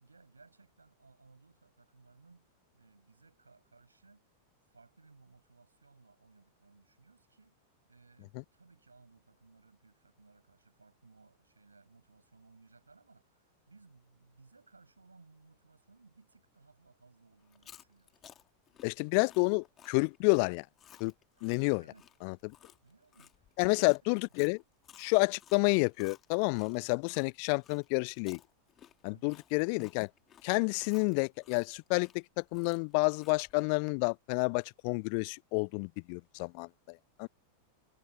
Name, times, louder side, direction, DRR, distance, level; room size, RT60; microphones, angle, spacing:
voice 1, 0.0-4.3 4.7-7.6 7.8-18.3 21.8-22.1 22.8-23.9 29.1-29.4, right 3 dB, 80° right, 7.7 m, -62 dB
Chewing mastication, 17.4-27.3 27.6-33.6, left 10 dB, 25° left, 3.3 m, -58 dB
voice 2, 18.8-20.7 21.0-21.1 21.4-21.8 22.2-22.5 23.6-24.6 25.0-28.4 29.0-30.1 30.4-37.3, left 40 dB or more, 45° left, 0.5 m, -30 dB
figure-of-eight pair, 90°, 0 cm